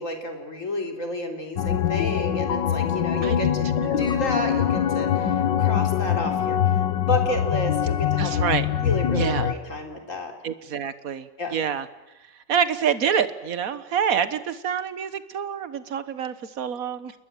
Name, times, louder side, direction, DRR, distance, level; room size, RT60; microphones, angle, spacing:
voice 1, 0.0-3.7 4.0-6.6 7.0-10.3 11.4-11.6, left 1 dB, 40° left, 4 dB, 3.8 m, -31 dB
sound 1, 1.6-9.5, left 9 dB, 70° left, 1.8 m, -23 dB
voice 2, 3.8-4.1 8.2-8.6 9.1-9.5 10.4-11.9 12.5-17.1, right 7 dB, 50° right, 13 dB, 1.6 m, -27 dB
29.5 x 21.0 x 9.0 m, 0.99 s
omnidirectional pair, 2.1 m